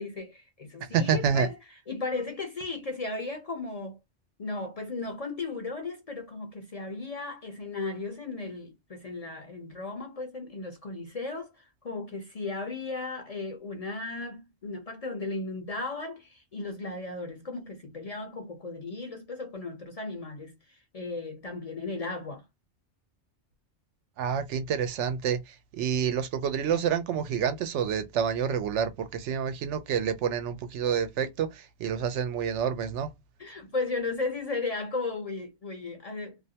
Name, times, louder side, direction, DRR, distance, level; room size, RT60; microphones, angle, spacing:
voice 1, 0.0-1.6 1.9-4.0 4.4-22.5 33.4-36.4, left 3 dB, 45° left, 0.5 m, -35 dB
voice 2, 0.9-1.5 24.2-25.4 25.7-33.1, right 7 dB, 85° right, 0.9 m, -28 dB
2.4 x 2.1 x 2.7 m
omnidirectional pair, 1.2 m